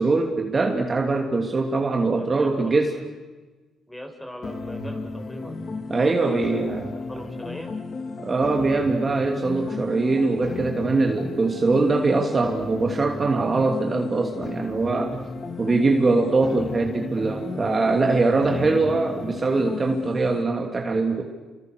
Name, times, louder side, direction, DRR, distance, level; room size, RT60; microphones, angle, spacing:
voice 1, 0.0-2.9 5.9-6.9 8.2-15.2 15.6-21.2, right 3 dB, 30° right, 2 dB, 3.0 m, -22 dB
voice 2, 2.2-3.1 3.9-5.6 5.9-6.6 7.1-7.7, equal, 5° left, 4 dB, 5.8 m, -39 dB
sound 1, 4.4-20.4, left 3 dB, 45° left, 2.6 m, -34 dB
29.5 x 25.5 x 6.7 m, 1.3 s
cardioid pair, 90°, 0 cm